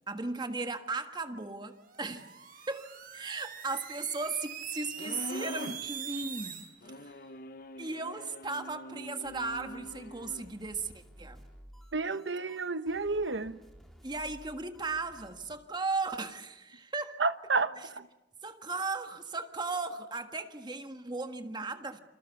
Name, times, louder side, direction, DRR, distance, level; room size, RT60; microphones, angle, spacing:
voice 1, 0.1-6.6 7.0-7.2 7.8-11.4 14.0-17.2 17.8-17.9 18.4-22.0, right 3 dB, 25° right, 1.6 m, -36 dB
sound 1, 1.8-6.7, right 8 dB, 50° right, 4.9 m, -43 dB
sound 2, 5.0-5.9 6.8-10.5, left 1 dB, 50° left, 1.0 m, -43 dB
sound 3, 9.2-15.6, equal, ahead, 4.0 m, -55 dB
voice 2, 11.9-13.6 17.2-18.1, right 3 dB, 75° right, 1.1 m, -31 dB
28.5 x 27.0 x 7.2 m
head